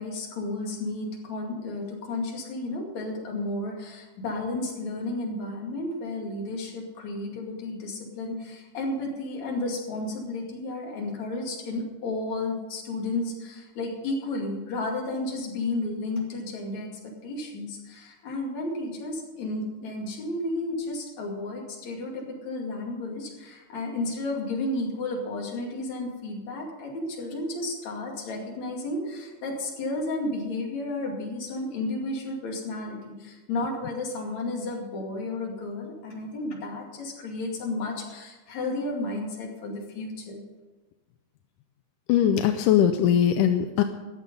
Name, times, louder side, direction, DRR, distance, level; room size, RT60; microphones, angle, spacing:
voice 1, 0.0-40.4, left 2 dB, 60° left, 0 dB, 3.5 m, -32 dB
voice 2, 42.1-43.8, left 9 dB, 85° left, 8 dB, 2.2 m, -21 dB
14.0 x 11.0 x 5.4 m, 1.2 s
omnidirectional pair, 3.6 m